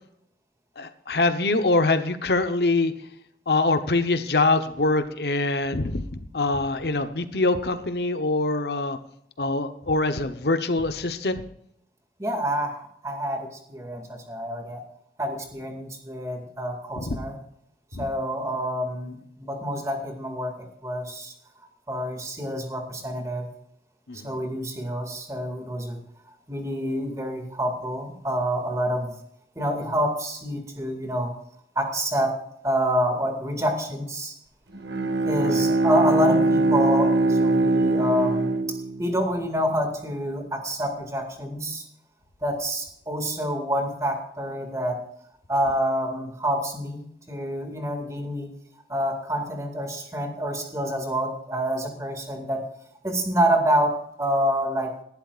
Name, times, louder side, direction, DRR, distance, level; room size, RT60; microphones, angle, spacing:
voice 1, 0.8-2.9 3.5-9.0 9.4-11.4 17.1-17.2 17.9-18.0 24.1-24.3 35.4-35.6, left 2 dB, 65° left, 9 dB, 1.0 m, -24 dB
voice 2, 12.2-14.8 15.2-17.4 18.0-21.3 21.9-23.5 24.1-26.0 26.5-29.1 29.6-31.3 31.8-34.4 35.2-41.8 42.4-45.0 45.5-48.5 48.9-52.7 53.0-54.9, equal, 20° right, 3 dB, 2.2 m, -27 dB
Bowed string instrument, 34.7-39.5, right 2 dB, 85° right, 1.5 m, -22 dB
19.0 x 11.5 x 2.5 m, 0.70 s
head